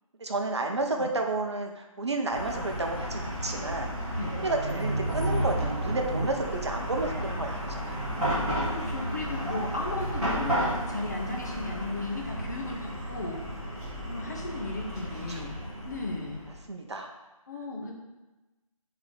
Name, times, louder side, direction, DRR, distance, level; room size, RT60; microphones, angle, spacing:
voice 1, 0.2-3.9 4.4-8.1 10.9-11.0 15.3-15.4 16.7-17.1, right 2 dB, 50° right, 3 dB, 0.8 m, -31 dB
Chatter / Car passing by / Traffic noise roadway noise, 2.3-16.6, right 1 dB, ahead, 1.6 m, -32 dB
voice 2, 8.6-13.4 14.1-15.6 15.8-16.4 17.5-17.9, left 2 dB, 30° left, -1 dB, 0.8 m, -35 dB
4.8 x 4.1 x 5.4 m, 1.1 s
figure-of-eight pair, 165°, 18 cm